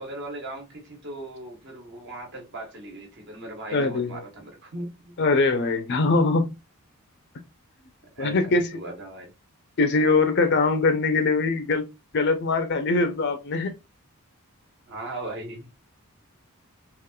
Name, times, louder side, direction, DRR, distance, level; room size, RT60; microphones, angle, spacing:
voice 1, 0.0-5.1 8.1-9.3 14.9-15.7, right 2 dB, 50° right, 1.2 m, -38 dB
voice 2, 3.7-4.2 5.2-6.5 8.2-8.6 9.8-11.9 12.1-13.7, left 3 dB, 50° left, 0.5 m, -22 dB
3.7 x 2.4 x 2.3 m
head